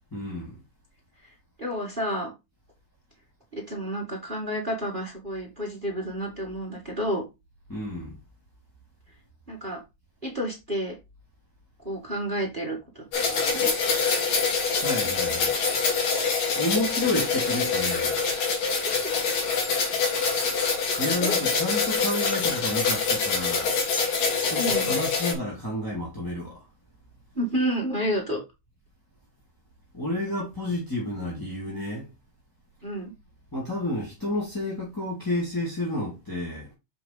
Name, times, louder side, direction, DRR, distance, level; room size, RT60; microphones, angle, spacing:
voice 1, 0.1-0.6 7.7-8.2 14.8-15.6 15.9-18.2 21.0-23.8 24.5-26.7 29.9-32.1 32.8-32.9 33.5-36.7, left 1 dB, 10° left, 1.5 m, -31 dB
voice 2, 1.2-2.3 3.5-7.2 9.5-9.8 10.2-10.9 11.8-13.7 18.9-19.1 20.8-20.9 21.2-21.3 24.6-24.9 27.3-28.4 32.8-33.1, equal, 20° right, 1.3 m, -30 dB
sound 1, 13.1-25.3, left 5 dB, 80° left, 4.2 m, -25 dB
7.2 x 5.0 x 3.9 m
omnidirectional pair, 3.7 m